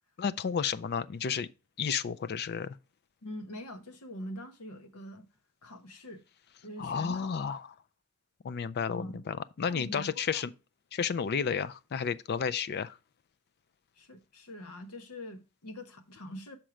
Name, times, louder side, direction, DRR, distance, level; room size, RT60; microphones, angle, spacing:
voice 1, 0.2-1.5 1.8-2.8 6.8-7.7 8.4-10.5 10.9-13.0, left 6 dB, 45° left, 0.4 m, -32 dB
voice 2, 3.2-5.3 5.6-6.2 6.6-7.3 8.9-9.2 9.7-10.4 14.0-16.6, equal, 85° left, 1.0 m, -44 dB
6.3 x 4.5 x 5.0 m
head